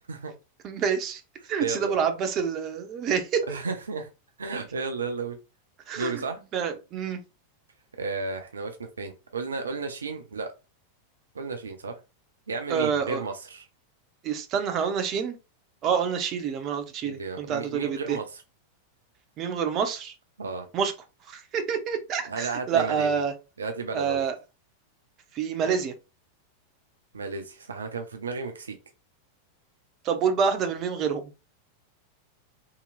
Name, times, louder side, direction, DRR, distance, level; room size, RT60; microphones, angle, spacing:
voice 1, 0.6-1.2 1.5-3.4 5.9-6.2 6.5-7.2 12.7-13.2 14.2-15.3 15.8-18.2 19.4-20.1 20.7-20.9 21.3-23.3 23.9-24.3 25.3-25.9 30.0-31.3, right 7 dB, 35° right, 0.7 m, -27 dB
voice 2, 1.6-2.0 3.5-4.1 4.4-5.4 6.0-6.4 8.0-10.5 11.3-12.0 12.5-13.7 17.0-18.4 20.4-20.7 22.3-23.2 23.6-24.2 25.6-25.8 27.1-28.8, right 4 dB, 70° right, 0.5 m, -33 dB
3.8 x 2.8 x 2.4 m
figure-of-eight pair, 90°, 0 cm